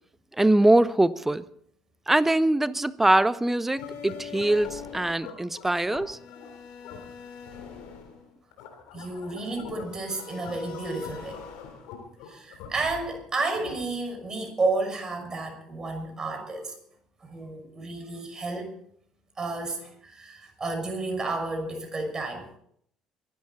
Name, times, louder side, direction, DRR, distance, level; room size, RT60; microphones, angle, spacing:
voice 1, 0.4-1.4 2.1-6.2, right 1 dB, 10° right, 0.9 m, -22 dB
sound 1, 3.8-14.1, left 7 dB, 65° left, 3.6 m, -42 dB
voice 2, 8.9-11.4 12.2-16.7 17.2-18.7 19.4-22.5, right 3 dB, 25° right, 5.8 m, -31 dB
24.0 x 12.0 x 4.1 m
figure-of-eight pair, 55°, 2 cm